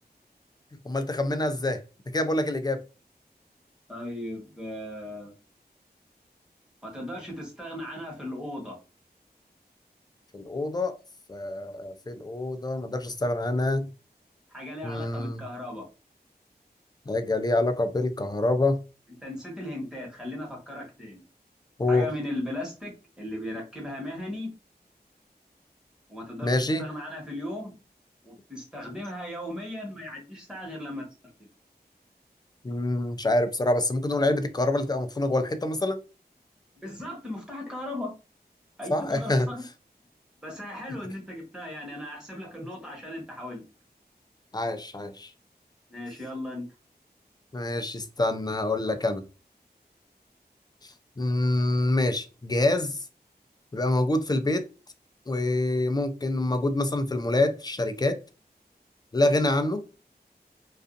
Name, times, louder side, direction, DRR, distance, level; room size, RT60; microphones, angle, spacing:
voice 1, 0.9-1.8 2.1-2.8 10.3-11.0 11.3-13.9 14.8-15.4 17.1-18.8 21.8-22.1 26.4-26.8 32.6-36.0 38.9-39.5 44.5-45.3 47.5-49.2 50.8-53.0 53.7-54.7 55.3-58.2 59.1-59.8, left 2 dB, 25° left, 0.4 m, -26 dB
voice 2, 3.9-5.3 6.8-8.8 14.5-15.8 19.2-21.2 21.9-24.5 26.1-27.7 28.2-31.1 36.7-38.1 38.8-39.6 40.4-43.6 45.9-46.7, left 1 dB, 5° right, 1.2 m, -37 dB
2.5 x 2.4 x 2.4 m
wide cardioid pair, 65°, 17 cm